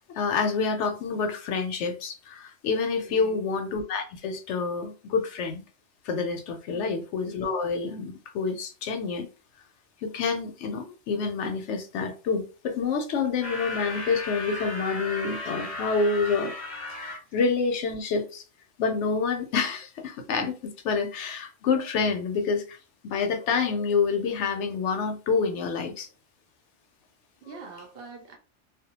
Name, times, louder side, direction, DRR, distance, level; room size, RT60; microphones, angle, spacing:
voice 1, 0.2-5.6 6.1-9.3 10.0-16.5 16.9-18.4 18.8-22.8 23.0-26.1, left 5 dB, 75° left, 0.9 m, -28 dB
voice 2, 3.1-3.4 6.7-6.9 27.4-28.4, right 5 dB, 60° right, 0.7 m, -44 dB
sound 1, 13.4-17.2, left 2 dB, 50° left, 0.6 m, -35 dB
2.3 x 2.1 x 2.8 m
omnidirectional pair, 1.2 m